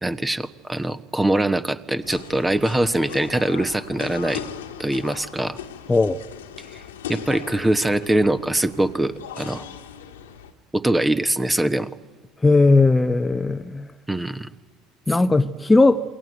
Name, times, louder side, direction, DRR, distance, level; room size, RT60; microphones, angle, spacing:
voice 1, 0.0-4.4 4.8-5.6 7.1-9.6 10.7-11.9 14.1-14.5 15.1-15.2, right 1 dB, 10° right, 1.3 m, -23 dB
sound 1, 2.0-10.5, left 8 dB, 75° left, 1.8 m, -38 dB
voice 2, 5.9-6.2 12.4-13.9 15.1-16.0, left 3 dB, 15° left, 1.0 m, -17 dB
28.0 x 21.0 x 9.4 m
figure-of-eight pair, 65°, 0 cm